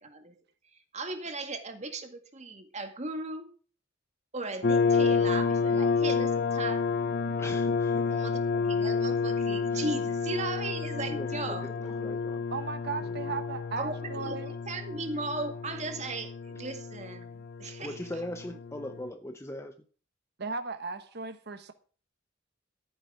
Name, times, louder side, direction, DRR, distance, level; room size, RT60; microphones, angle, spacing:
voice 1, 0.0-0.3 0.6-3.5 4.3-6.9 8.1-11.7 12.1-12.3 13.8-18.0, right 2 dB, 35° right, 2.0 m, -37 dB
sound 1, 4.6-19.1, left 5 dB, 50° left, 0.6 m, -30 dB
voice 2, 7.4-8.2 9.7-9.9 11.0-12.4 13.0-13.4 17.8-19.8, left 1 dB, 15° left, 0.7 m, -40 dB
voice 3, 12.5-14.5 20.4-21.7, right 4 dB, 55° right, 1.2 m, -36 dB
13.5 x 9.2 x 5.0 m
head